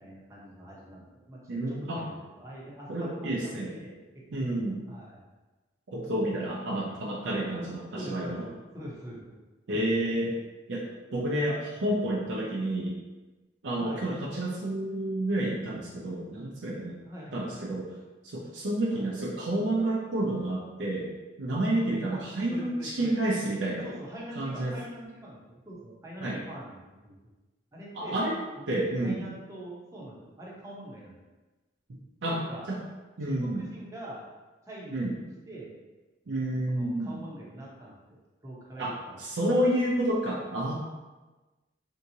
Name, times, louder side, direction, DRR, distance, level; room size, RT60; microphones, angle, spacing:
voice 1, 0.0-1.4 1.7-4.0 4.3-4.4 4.9-5.2 6.7-7.0 7.9-9.4 9.7-10.3 11.8-12.0 13.8-14.1 17.0-17.7 18.9-19.2 22.1-22.2 22.5-23.1 23.8-27.2 27.7-28.2 28.7-31.2 32.2-32.7 33.2-34.2 34.6-35.7 36.7-39.2, right 1 dB, 15° right, -5 dB, 0.7 m, -44 dB
voice 2, 1.5-2.0 2.9-3.7 4.3-4.8 5.9-8.4 9.7-10.4 10.7-10.8 11.1-13.0 13.6-17.0 17.3-17.9 18.2-21.1 21.4-23.8 24.4-24.7 26.2-26.4 28.0-28.3 28.7-29.2 32.2-32.4 32.7-32.8 33.2-33.6 34.9-35.1 36.3-37.2 38.8-40.7, right 1 dB, 85° right, -4 dB, 0.5 m, -29 dB
3.5 x 2.8 x 2.7 m, 1.2 s
head